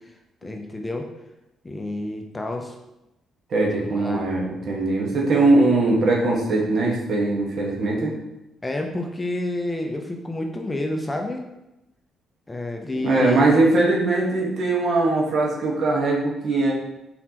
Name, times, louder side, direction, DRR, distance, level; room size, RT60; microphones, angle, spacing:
voice 1, 0.4-1.0 1.6-2.7 3.9-4.3 5.4-5.5 8.6-11.4 12.5-13.5, left 1 dB, 15° left, 3 dB, 0.5 m, -29 dB
voice 2, 3.5-8.1 13.0-16.7, right 2 dB, 60° right, -3 dB, 1.3 m, -20 dB
4.3 x 4.0 x 2.9 m, 0.92 s
cardioid pair, 90°, 0 cm